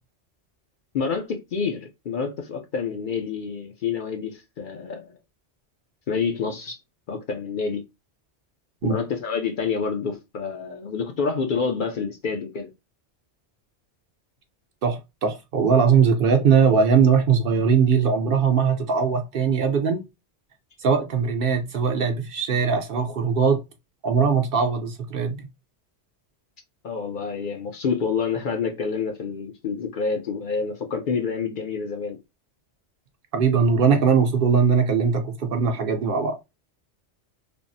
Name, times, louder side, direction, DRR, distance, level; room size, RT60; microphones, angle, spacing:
voice 1, 0.9-5.1 6.1-6.8 7.1-7.8 8.8-12.7 26.8-32.2, left 5 dB, 60° left, 0.6 m, -28 dB
voice 2, 14.8-20.0 20.8-23.6 24.0-25.5 33.3-36.4, right 6 dB, 60° right, 0.7 m, -20 dB
3.4 x 2.0 x 2.5 m
omnidirectional pair, 1.2 m